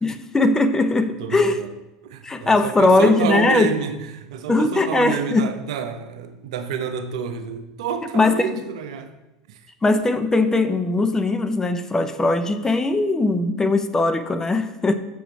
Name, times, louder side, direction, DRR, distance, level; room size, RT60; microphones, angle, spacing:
voice 1, 0.0-1.6 2.2-3.7 4.5-5.5 8.1-8.5 9.8-14.9, left 2 dB, 15° left, 10 dB, 0.6 m, -20 dB
voice 2, 1.2-1.7 2.0-9.1 9.5-9.6, right 7 dB, 75° right, 8 dB, 0.8 m, -29 dB
7.0 x 5.0 x 6.0 m, 1.0 s
hypercardioid pair, 90°, 3 cm